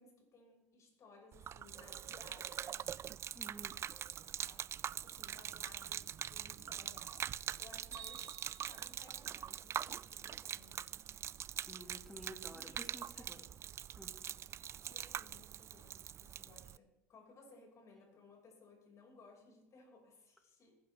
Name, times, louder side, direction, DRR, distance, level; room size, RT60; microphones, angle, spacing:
voice 1, 0.0-3.0 3.7-4.8 5.0-10.9 12.5-13.7 14.8-20.8, left 3 dB, 40° left, 1 dB, 5.7 m, -61 dB
Gurgling / Liquid, 1.3-16.8, right 9 dB, 35° right, 0.3 m, -44 dB
voice 2, 3.3-3.8 11.7-13.4 14.0-14.2, right 1 dB, ahead, 5 dB, 2.2 m, -52 dB
Bell, 7.9-9.9, right 9 dB, 55° right, 2.3 m, -54 dB
21.5 x 11.0 x 3.5 m, 0.98 s
hypercardioid pair, 75°, 8 cm